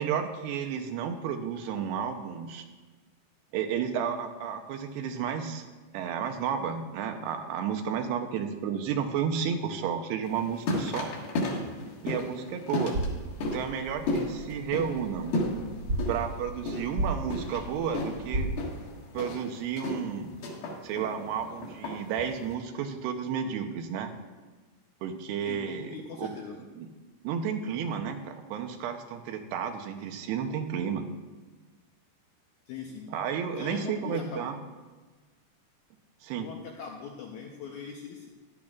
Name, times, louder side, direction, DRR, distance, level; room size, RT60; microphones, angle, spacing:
voice 1, 0.0-2.6 3.5-5.6 5.9-11.1 12.0-13.0 13.4-15.3 16.1-18.5 19.1-20.3 20.8-24.1 25.0-26.3 26.8-26.9 27.2-31.0 33.1-34.6 36.2-36.5, right 7 dB, 85° right, 6 dB, 2.9 m, -32 dB
sound 1, 10.2-22.5, left 1 dB, 65° left, 3.5 m, -34 dB
sound 2, 12.9-18.5, right 1 dB, 45° right, 1.7 m, -35 dB
voice 2, 25.4-26.6 32.7-33.1 33.6-34.5 36.4-38.3, left 6 dB, 85° left, 0 dB, 1.7 m, -41 dB
15.0 x 12.0 x 2.5 m, 1.3 s
omnidirectional pair, 4.6 m